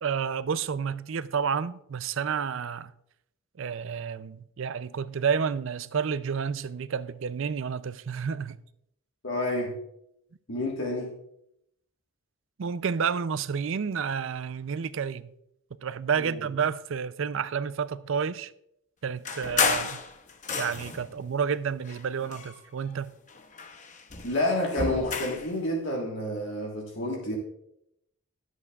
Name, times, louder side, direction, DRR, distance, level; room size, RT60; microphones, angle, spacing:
voice 1, 0.0-2.9 3.6-8.6 12.6-15.3 15.8-18.5 19.0-20.0 20.5-23.1, right 6 dB, 60° right, 0.4 m, -30 dB
voice 2, 9.2-9.8 10.5-11.2 16.2-16.5 24.2-27.4, left 1 dB, 55° left, 1.5 m, -29 dB
sound 1, 19.2-21.1 21.8-23.0 23.3-25.5, left 5 dB, 35° left, 0.8 m, -31 dB
20.5 x 8.1 x 2.4 m
head